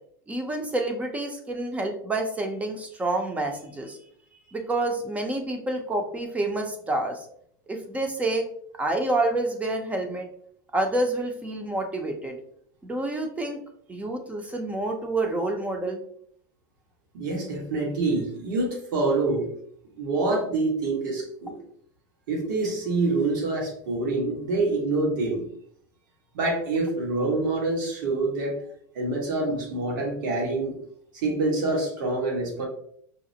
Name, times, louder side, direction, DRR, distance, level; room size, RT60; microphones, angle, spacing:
voice 1, 0.3-4.0 4.5-7.2 7.7-8.4 8.8-10.3 10.7-12.4 12.8-13.6 13.9-16.0, right 2 dB, 15° right, 4 dB, 0.6 m, -28 dB
voice 2, 17.1-19.5 19.9-21.6 22.3-25.4 26.3-28.6 28.9-30.7 31.1-32.7, right 2 dB, 85° right, 0 dB, 1.3 m, -26 dB
4.9 x 2.1 x 2.7 m, 0.65 s
supercardioid pair, 130°, 10 cm